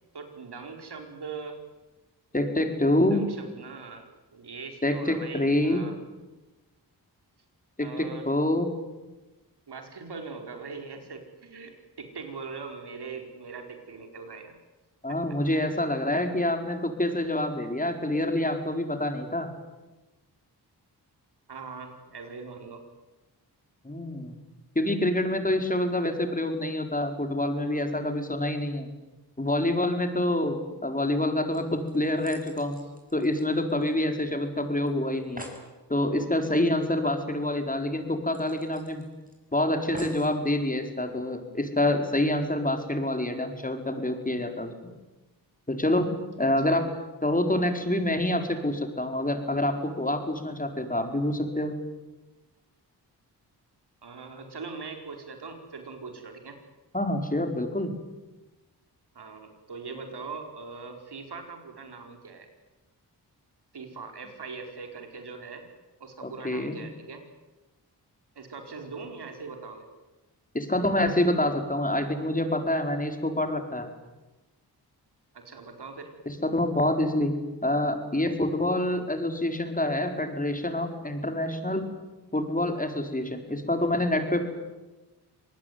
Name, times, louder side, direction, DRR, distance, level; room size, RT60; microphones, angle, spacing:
voice 1, 0.1-1.6 3.0-5.9 7.8-8.3 9.7-14.5 15.1-15.2 21.5-22.8 46.7-46.8 54.0-56.6 59.1-62.5 63.7-65.7 66.0-67.3 68.3-69.9 75.3-76.1, right 4 dB, 70° right, 5 dB, 4.9 m, -41 dB
voice 2, 2.3-3.3 4.8-5.8 7.8-8.7 15.0-19.5 23.8-24.4 24.7-28.9 29.4-32.8 33.1-35.5 35.9-39.0 39.5-44.9 45.7-46.1 46.4-46.9 47.2-51.7 56.9-57.9 66.2-66.8 70.5-73.9 76.4-77.3 77.6-81.9 82.3-84.4, left 1 dB, 20° left, 5 dB, 4.9 m, -27 dB
sound 1, 31.5-34.2 34.5-34.6 34.9-35.0 35.2-35.7 37.2-37.3 37.6-37.7 38.3-39.3 39.9-40.4 41.1-41.2, right 1 dB, 20° right, 7.4 m, -46 dB
26.0 x 19.5 x 9.6 m, 1.1 s
cardioid pair, 55°, 41 cm